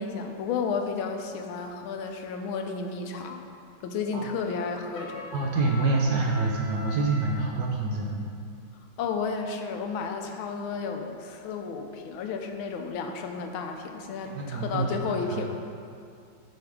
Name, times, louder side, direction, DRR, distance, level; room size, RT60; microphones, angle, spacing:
voice 1, 0.0-3.4 3.8-5.3 9.0-15.5, left 5 dB, 90° left, 5 dB, 1.4 m, -32 dB
Trumpet, 4.9-7.5, equal, 65° left, 0.5 m, -41 dB
voice 2, 5.3-8.3 14.2-15.5, right 3 dB, 70° right, 0 dB, 1.0 m, -27 dB
7.8 x 5.5 x 3.6 m, 2.3 s
omnidirectional pair, 2.2 m